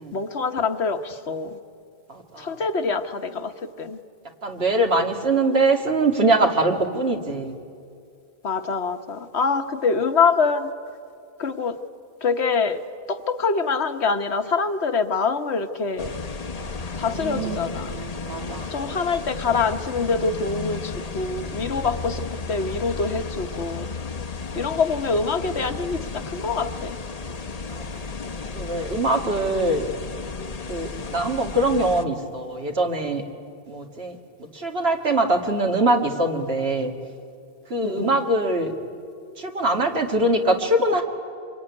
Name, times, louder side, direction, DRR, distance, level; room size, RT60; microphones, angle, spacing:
voice 1, 0.1-1.6 2.4-4.0 8.4-10.7 11.4-11.8 12.2-12.8 13.1-16.1 17.0-18.0 18.7-23.9 24.6-27.0 37.8-38.1, left 4 dB, 70° left, 7 dB, 1.4 m, -25 dB
voice 2, 2.1-2.6 4.4-7.5 17.1-17.6 18.3-18.7 24.5-24.6 27.7-28.0 28.5-29.8 30.7-33.2 33.7-34.2 34.5-36.9 37.7-38.7 39.4-41.0, right 2 dB, 60° right, 3 dB, 2.3 m, -23 dB
sound 1, 16.0-32.0, left 4 dB, 35° left, 0.9 m, -33 dB
26.0 x 23.0 x 9.7 m, 2.4 s
omnidirectional pair, 1.2 m